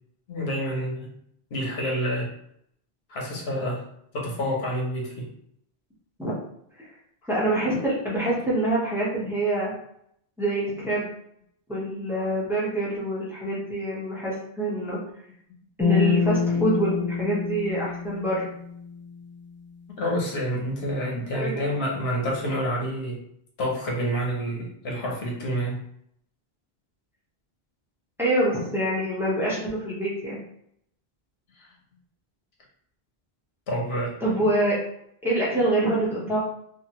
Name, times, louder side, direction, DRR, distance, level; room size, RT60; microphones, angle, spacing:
voice 1, 0.3-1.1 1.5-2.3 3.1-3.8 4.1-5.3 20.0-23.2 23.6-25.8 31.6-31.7 33.7-34.1, equal, 85° left, -2 dB, 1.1 m, -28 dB
voice 2, 7.3-9.7 10.4-11.1 11.7-15.0 15.8-18.5 21.3-21.7 28.2-30.4 34.2-34.8 35.2-36.4, right 1 dB, 5° right, -7 dB, 0.9 m, -25 dB
sound 1, 15.8-19.1, left 5 dB, 15° left, 0.4 m, -26 dB
2.9 x 2.5 x 2.9 m, 0.71 s
omnidirectional pair, 1.0 m